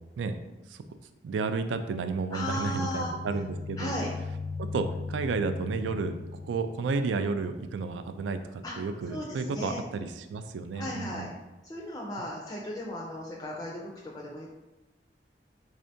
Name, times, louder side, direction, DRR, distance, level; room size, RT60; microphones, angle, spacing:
voice 1, 1.2-4.0 4.6-6.1 6.4-11.3, right 4 dB, 90° right, 9 dB, 0.3 m, -32 dB
sound 1, 2.2-6.9, left 4 dB, 75° left, 0.6 m, -38 dB
voice 2, 2.3-3.1 3.8-4.1 8.6-8.7 9.1-9.8 10.7-11.3 11.6-14.5, left 1 dB, 20° left, -2 dB, 0.4 m, -36 dB
3.6 x 3.3 x 2.7 m, 1.1 s
head